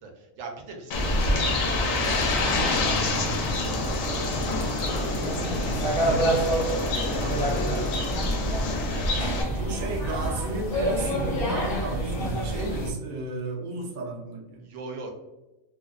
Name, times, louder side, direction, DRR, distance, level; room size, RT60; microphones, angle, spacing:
voice 1, 0.0-5.4 6.0-6.4 6.7-9.9 14.6-15.1, right 3 dB, 75° right, 2 dB, 1.0 m, -43 dB
Bird, 0.9-9.4, left 3 dB, 85° left, 1.0 m, -29 dB
sound 1, 0.9-12.9, right 1 dB, 55° left, 0.8 m, -28 dB
sound 2, 2.0-8.3, left 2 dB, 40° left, 0.3 m, -50 dB
voice 2, 5.9-6.3 9.5-14.6, right 2 dB, 60° right, 0 dB, 0.5 m, -33 dB
2.6 x 2.1 x 2.3 m, 1.0 s
omnidirectional pair, 1.4 m